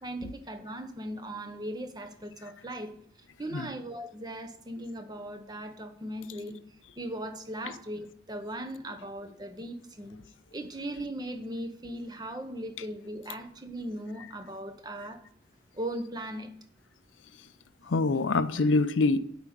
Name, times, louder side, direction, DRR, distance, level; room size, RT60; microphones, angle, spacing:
voice 1, 0.0-2.9 3.4-6.6 7.0-10.2 10.5-15.2 15.7-16.5, right 1 dB, 20° right, 0.8 m, -38 dB
voice 2, 17.8-19.2, left 3 dB, 85° left, 0.6 m, -25 dB
8.2 x 5.0 x 7.6 m
head